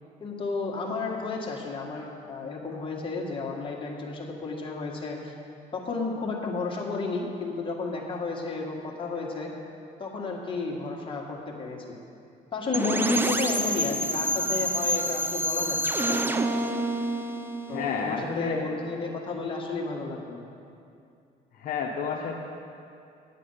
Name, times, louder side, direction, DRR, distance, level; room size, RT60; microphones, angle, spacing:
voice 1, 0.2-5.3 5.7-9.5 10.0-12.0 12.5-16.2 17.7-20.4, left 3 dB, 30° left, -1 dB, 1.6 m, -32 dB
sound 1, 12.7-18.5, right 1 dB, 10° right, 0.5 m, -28 dB
voice 2, 17.7-18.7 21.6-22.4, left 5 dB, 55° left, -1 dB, 0.8 m, -30 dB
8.7 x 8.3 x 5.6 m, 2.5 s
cardioid pair, 110°, 17 cm